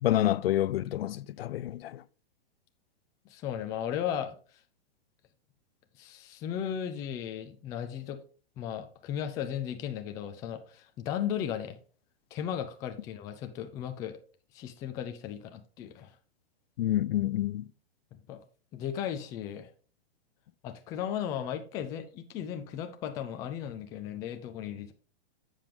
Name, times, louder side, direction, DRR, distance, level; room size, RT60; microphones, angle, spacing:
voice 1, 0.0-2.0 16.8-17.7, left 13 dB, 70° left, 0.5 m, -28 dB
voice 2, 3.2-4.6 6.0-8.2 8.6-11.8 12.3-14.2 14.5-16.2 18.1-18.4 18.7-19.7 20.6-24.9, left 9 dB, 10° left, 0.3 m, -36 dB
7.6 x 6.6 x 3.6 m
hypercardioid pair, 150°, 31 cm